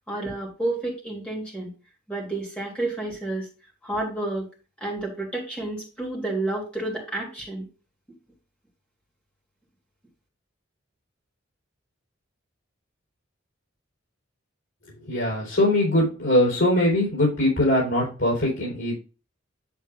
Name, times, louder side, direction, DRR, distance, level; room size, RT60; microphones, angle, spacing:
voice 1, 0.1-1.7 2.1-3.5 3.8-4.4 4.8-7.7, right 2 dB, 5° left, -3 dB, 3.0 m, -30 dB
voice 2, 15.0-18.9, left 1 dB, 70° left, -5 dB, 4.4 m, -22 dB
8.3 x 7.1 x 2.6 m, 0.34 s
head